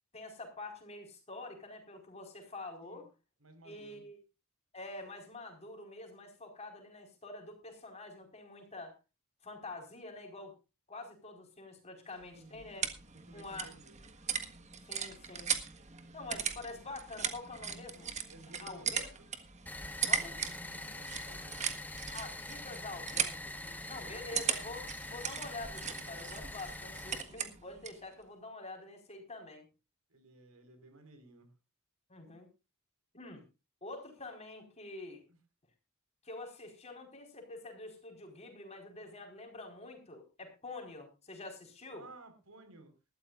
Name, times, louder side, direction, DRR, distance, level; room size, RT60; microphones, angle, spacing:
voice 1, 0.1-3.1 3.6-4.2 4.7-9.0 9.4-10.5 10.9-12.9 13.3-13.7 14.9-15.5 16.1-18.1 18.6-19.1 20.0-20.4 22.1-23.5 23.9-29.7 32.1-32.5 33.1-33.4 33.8-35.2 36.2-42.0, left 2 dB, 30° left, 4 dB, 4.8 m, -46 dB
voice 2, 3.4-4.0 12.2-12.6 13.1-14.0 18.3-19.3 20.6-21.8 23.6-24.0 30.1-31.5 35.3-35.4 41.9-42.9, right 2 dB, 90° right, 8 dB, 4.8 m, -56 dB
sound 1, 12.2-28.1, right 7 dB, 35° right, 1.6 m, -39 dB
sound 2, 19.7-27.2, left 2 dB, 10° left, 1.3 m, -44 dB
20.5 x 13.5 x 2.5 m, 0.30 s
head